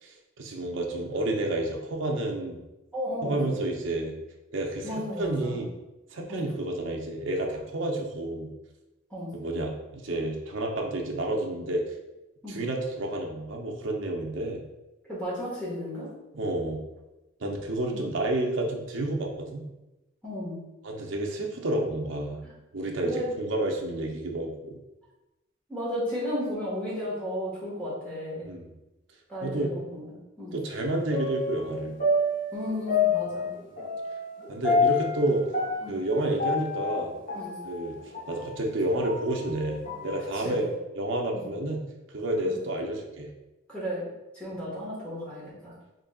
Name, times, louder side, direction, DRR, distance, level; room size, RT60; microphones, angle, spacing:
voice 1, 0.0-2.6 3.2-4.1 4.5-5.7 6.1-8.5 9.3-11.8 12.5-14.6 16.3-16.8 17.4-19.6 20.8-22.4 22.7-24.8 28.4-28.7 29.4-29.7 30.5-32.0 34.5-35.4 35.9-37.1 37.6-38.0 38.3-40.6 40.9-41.8 42.1-43.3, right 1 dB, 65° right, 1 dB, 0.6 m, -30 dB
voice 2, 2.9-3.5 4.8-5.6 6.3-6.5 9.1-9.3 12.4-12.6 15.1-16.1 17.9-18.0 20.2-20.6 23.0-23.3 25.7-28.4 29.3-30.1 30.4-30.5 32.5-33.5 35.8-35.9 37.3-37.5 40.3-40.7 41.3-41.4 42.4-42.5 43.7-44.1 44.3-45.7, equal, 5° left, -8 dB, 1.5 m, -33 dB
sound 1, 31.1-38.3 38.8-40.1 40.5-40.6, left 3 dB, 40° left, 0.9 m, -28 dB
3.8 x 3.5 x 2.3 m, 1.0 s
head